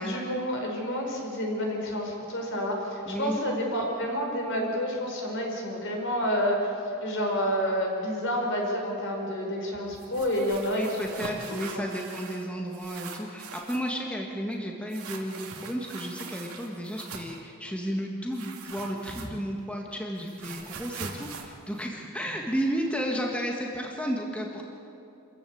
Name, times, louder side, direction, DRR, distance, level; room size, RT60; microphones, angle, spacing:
voice 1, 0.0-11.9, equal, 60° left, 1 dB, 5.2 m, -29 dB
voice 2, 3.0-3.4 10.8-24.6, equal, 5° left, 0 dB, 1.7 m, -33 dB
sound 1, 10.0-12.5 12.7-13.9 14.9-17.4 18.3-19.6 19.9-22.6, right 5 dB, 75° right, 2.6 m, -42 dB
26.5 x 15.0 x 8.7 m, 2.9 s
head